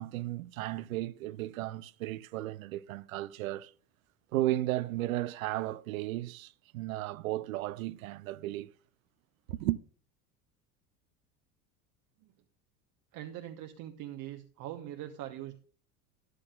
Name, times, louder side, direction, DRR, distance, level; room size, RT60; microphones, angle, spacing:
voice 1, 0.0-3.7 4.3-8.7 9.5-9.8, right 16 dB, 65° right, 0.6 m, -34 dB
voice 2, 13.1-15.6, right 12 dB, 45° right, 1.1 m, -42 dB
12.5 x 11.5 x 2.4 m
figure-of-eight pair, 70°, 46 cm